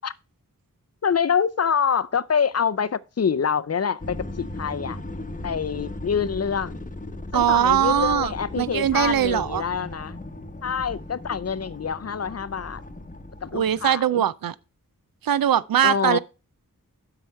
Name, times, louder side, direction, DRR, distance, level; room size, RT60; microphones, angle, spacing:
voice 1, 1.0-5.0 5.4-6.8 7.3-10.2 10.6-12.8 13.4-14.2 15.8-16.2, left 7 dB, 45° left, 0.5 m, -26 dB
sound 1, 4.0-13.9, left 1 dB, 25° left, 0.9 m, -37 dB
voice 2, 7.3-9.6 13.5-14.5 15.2-16.2, right 10 dB, 80° right, 0.5 m, -21 dB
7.7 x 4.8 x 5.5 m
cardioid pair, 45°, 35 cm